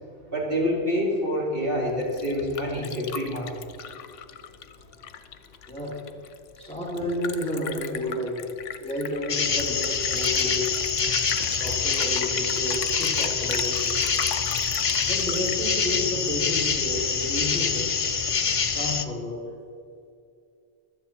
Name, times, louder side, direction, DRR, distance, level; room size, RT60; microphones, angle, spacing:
voice 1, 0.3-3.5, equal, 50° right, -4 dB, 3.5 m, -27 dB
Liquid, 1.9-16.4, left 8 dB, 85° left, 1.1 m, -37 dB
voice 2, 5.7-6.0 6.6-8.5 8.8-10.7 11.5-14.0 14.4-14.5 15.0-18.0 18.6-19.5, left 1 dB, 5° left, -4 dB, 2.5 m, -31 dB
sound 1, 9.3-19.0, left 6 dB, 40° left, 0.5 m, -25 dB
16.5 x 12.0 x 4.3 m, 2.4 s
omnidirectional pair, 1.2 m